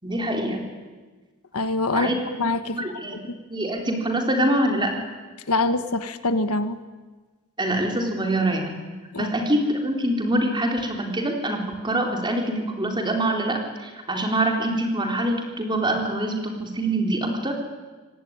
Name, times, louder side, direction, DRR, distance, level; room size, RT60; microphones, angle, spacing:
voice 1, 0.0-0.6 1.9-2.1 2.7-3.2 3.5-4.9 7.6-8.8 9.2-17.5, right 1 dB, 20° right, 2 dB, 3.9 m, -24 dB
voice 2, 1.5-2.1 2.4-2.8 3.1-3.4 5.5-6.8 9.1-9.3, left 2 dB, 85° left, 10 dB, 1.5 m, -24 dB
25.5 x 19.0 x 9.7 m, 1.3 s
head